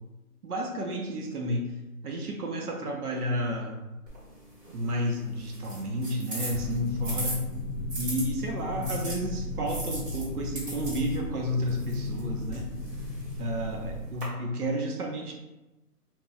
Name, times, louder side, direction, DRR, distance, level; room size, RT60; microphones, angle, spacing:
voice 1, 0.4-1.8 2.0-3.8 4.7-7.5 8.0-12.7 13.4-15.3, equal, 70° right, 1 dB, 0.7 m, -31 dB
sound 1, 4.1-8.2 8.8-14.2, right 1 dB, 35° right, 1.1 m, -40 dB
sound 2, 6.5-14.0, left 1 dB, 75° left, 0.7 m, -35 dB
2.3 x 2.1 x 3.7 m, 1.1 s
hypercardioid pair, 165°, 47 cm